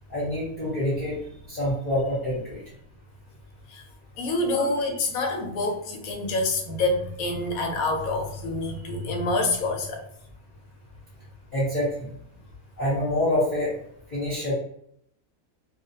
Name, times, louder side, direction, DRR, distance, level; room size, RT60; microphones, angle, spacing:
voice 1, 0.1-1.2 1.5-2.6 4.5-4.6 8.8-8.9 11.5-12.1 12.8-13.7 14.1-14.5, left 1 dB, 40° left, -9 dB, 1.0 m, -26 dB
voice 2, 4.2-10.0, left 2 dB, 80° left, 3 dB, 1.1 m, -27 dB
2.4 x 2.3 x 2.7 m, 0.71 s
omnidirectional pair, 1.5 m